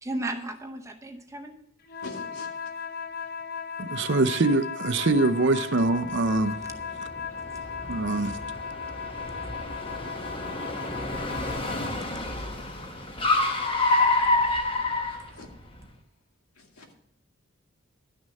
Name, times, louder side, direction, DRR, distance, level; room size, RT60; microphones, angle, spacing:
voice 1, 0.0-1.6 6.4-6.7, right 1 dB, 15° right, 0.7 m, -35 dB
sound 1, 1.8-12.1, left 6 dB, 45° left, 0.6 m, -37 dB
voice 2, 2.0-2.7 8.2-8.3 15.3-15.5 16.6-16.9, left 2 dB, 85° left, 2.2 m, -44 dB
voice 3, 3.8-6.6 7.9-8.4, right 2 dB, 55° right, 0.6 m, -24 dB
Car, 6.0-15.8, left 2 dB, 25° left, 1.1 m, -28 dB
11.5 x 6.3 x 6.5 m
head